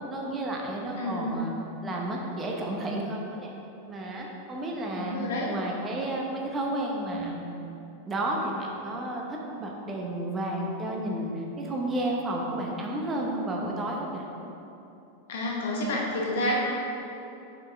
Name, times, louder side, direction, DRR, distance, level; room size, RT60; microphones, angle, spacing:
voice 1, 0.1-1.5 1.8-3.5 3.9-5.2 5.5-7.6 8.1-14.2, right 1 dB, 20° right, -1 dB, 0.9 m, -32 dB
voice 2, 1.0-1.3 4.9-5.5 15.3-16.6, left 1 dB, 60° left, -2 dB, 1.2 m, -29 dB
7.2 x 5.6 x 3.5 m, 2.9 s
figure-of-eight pair, 90°, 0 cm